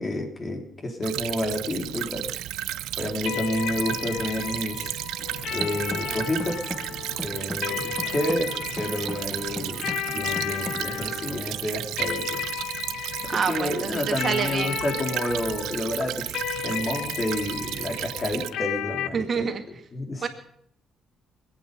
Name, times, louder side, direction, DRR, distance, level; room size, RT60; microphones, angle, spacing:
voice 1, 0.0-2.3 3.0-5.0 5.5-6.6 7.2-12.4 13.2-19.5 19.9-20.3, left 1 dB, 35° left, 3 dB, 3.7 m, -30 dB
Stream / Trickle dribble, 1.0-18.5, right 14 dB, 90° right, 0.6 m, -33 dB
sound 1, 3.3-19.1, left 11 dB, 80° left, 0.7 m, -34 dB
sound 2, 5.2-11.4, left 1 dB, 10° left, 1.5 m, -39 dB
voice 2, 13.3-14.8 19.1-19.6 20.2-20.3, right 6 dB, 50° right, 6 dB, 2.0 m, -27 dB
25.5 x 9.0 x 5.4 m, 0.72 s
cardioid pair, 90°, 0 cm